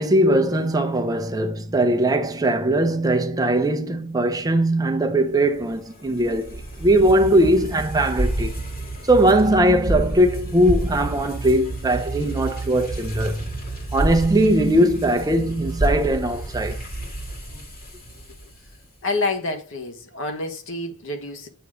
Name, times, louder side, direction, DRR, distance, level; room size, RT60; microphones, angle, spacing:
voice 1, 0.0-8.5 9.1-13.5 13.9-16.8, right 1 dB, 15° right, 0.6 m, -20 dB
sound 1, 5.4-18.8, right 2 dB, 45° left, 1.9 m, -29 dB
voice 2, 19.0-21.5, left 2 dB, 60° left, 1.3 m, -28 dB
8.0 x 3.1 x 4.9 m
head